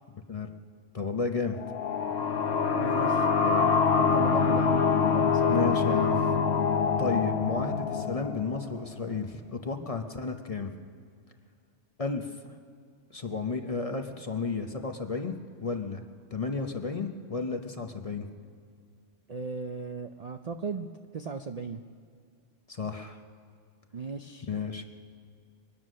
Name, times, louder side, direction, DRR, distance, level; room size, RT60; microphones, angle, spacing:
voice 1, 0.9-1.6 5.5-6.3 7.0-10.7 12.0-12.5 13.1-15.3 15.6-16.0 16.3-18.3 22.7-23.2 24.5-24.8, left 4 dB, 35° left, 5 dB, 0.8 m, -32 dB
sound 1, 1.5-9.0, left 5 dB, 60° left, 1.2 m, -25 dB
voice 2, 2.7-4.8 5.1-5.6 19.3-21.8 23.9-24.5, right 4 dB, 50° right, 6 dB, 0.5 m, -37 dB
23.5 x 9.4 x 6.3 m, 2.1 s
omnidirectional pair, 1.3 m